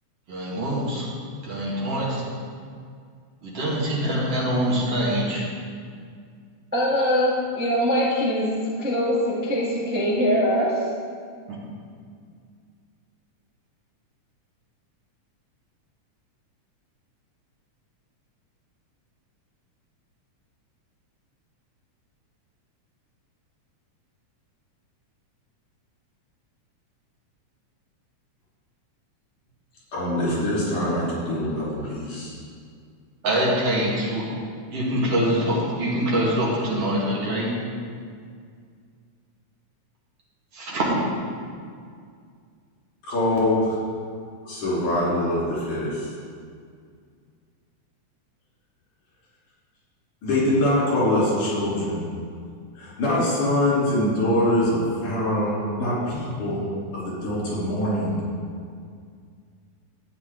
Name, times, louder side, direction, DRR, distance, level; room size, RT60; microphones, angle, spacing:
voice 1, 0.3-1.1 1.4-2.2 3.4-5.4 11.5-11.6 33.2-34.2 34.7-37.5 40.5-40.9, right 1 dB, 55° right, -5 dB, 2.7 m, -24 dB
voice 2, 6.7-8.5 8.8-10.8, equal, 5° right, -7 dB, 1.2 m, -22 dB
voice 3, 29.9-32.3 43.1-43.7 44.4-46.1 50.2-52.1 52.8-56.7 56.9-58.2, left 1 dB, 80° left, -8 dB, 4.9 m, -24 dB
12.5 x 9.3 x 3.8 m, 2.1 s
omnidirectional pair, 3.5 m